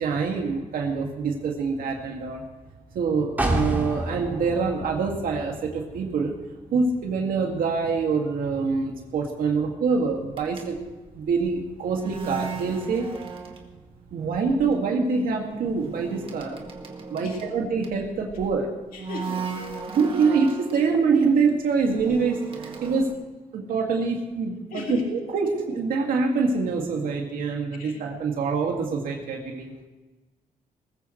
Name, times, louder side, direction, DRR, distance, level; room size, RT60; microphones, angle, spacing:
voice 1, 0.0-2.4 2.9-6.3 6.7-10.8 11.2-13.1 14.1-16.6 17.1-18.7 19.9-23.1 23.5-29.7, right 4 dB, 85° right, 1 dB, 2.2 m, -25 dB
sound 1, 3.4-7.1 7.5-7.6, right 1 dB, 10° right, 2.2 m, -30 dB
sound 2, 10.3-14.0 14.2-14.6 15.4-18.5 18.9-20.8 21.5-23.1, right 5 dB, 40° right, 1.9 m, -36 dB
voice 2, 18.9-19.5 24.7-25.1 27.8-28.0, left 4 dB, 80° left, 0 dB, 2.3 m, -35 dB
20.0 x 14.5 x 3.2 m, 1.2 s
cardioid pair, 110°, 14 cm